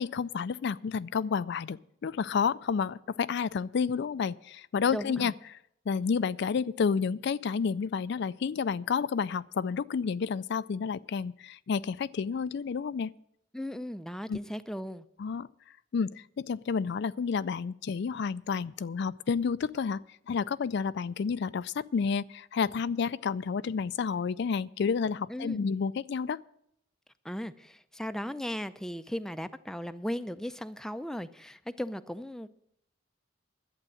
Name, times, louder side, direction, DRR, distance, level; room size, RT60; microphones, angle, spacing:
voice 1, 0.0-5.6 5.9-13.1 14.3-14.4 15.2-15.5 15.9-20.0 20.3-26.4, left 6 dB, 60° left, 16 dB, 0.4 m, -30 dB
voice 2, 4.9-5.3 13.5-15.0 25.3-25.6 27.2-32.5, equal, 5° left, 11 dB, 0.5 m, -37 dB
11.5 x 8.5 x 7.7 m, 0.72 s
head